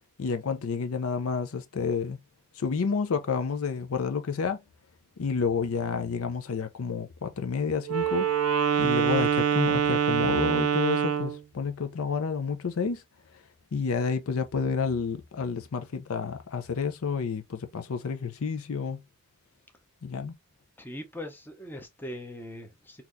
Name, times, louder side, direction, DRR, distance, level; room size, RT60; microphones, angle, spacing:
voice 1, 0.2-2.2 2.6-4.6 5.2-8.3 8.8-13.0 13.7-19.0 20.0-20.3, left 5 dB, 65° left, 0.5 m, -30 dB
Wind instrument woodwind instrument, 7.8-11.4, right 8 dB, 80° right, 0.5 m, -25 dB
voice 2, 20.8-23.0, left 1 dB, 10° left, 0.6 m, -40 dB
4.0 x 2.9 x 2.5 m
head